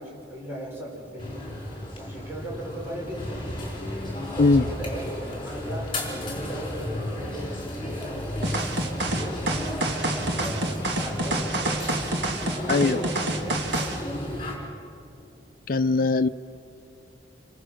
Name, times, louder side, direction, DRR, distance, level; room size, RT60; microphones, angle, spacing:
voice 1, 0.0-1.3 2.0-3.5 4.0-8.3 8.9-11.8 12.2-14.3, equal, 10° right, -4 dB, 5.8 m, -38 dB
sound 1, 1.2-14.6, left 1 dB, 25° left, 4.2 m, -33 dB
sound 2, 8.4-14.0, right 2 dB, 65° right, 1.9 m, -28 dB
voice 2, 15.7-16.3, left 3 dB, 45° left, 9 dB, 0.5 m, -20 dB
27.5 x 22.5 x 6.4 m, 2.6 s
head